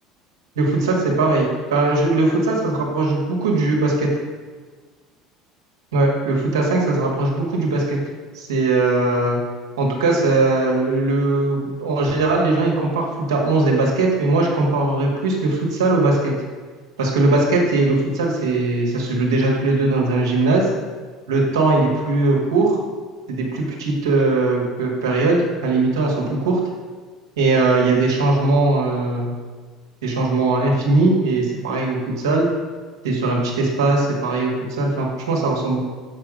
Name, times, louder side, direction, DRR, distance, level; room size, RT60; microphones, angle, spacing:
voice 1, 0.6-4.1 5.9-8.0 8.3-9.4 9.8-16.3 17.0-20.7 21.3-22.8 23.3-26.6 27.4-29.3 30.0-32.5 33.0-35.8, right 2 dB, 75° right, -2 dB, 1.8 m, -19 dB
7.3 x 6.1 x 5.0 m, 1.4 s
figure-of-eight pair, 65°, 2 cm